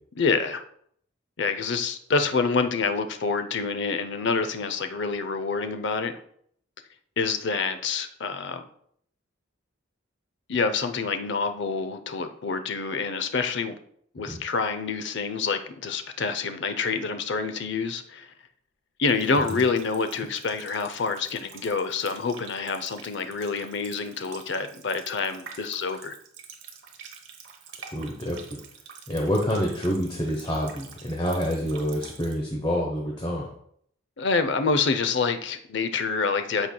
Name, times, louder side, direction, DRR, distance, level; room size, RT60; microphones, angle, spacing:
voice 1, 0.2-0.6 1.4-6.2 7.2-8.6 10.5-13.8 14.1-18.3 19.0-26.2 34.2-36.7, left 4 dB, 55° left, 9 dB, 0.6 m, -27 dB
Water tap faucet, 19.1-32.4, right 6 dB, 60° right, 1.1 m, -47 dB
voice 2, 27.9-28.6 29.1-33.5, equal, 25° left, -1 dB, 0.9 m, -27 dB
13.5 x 4.6 x 2.3 m, 0.66 s
head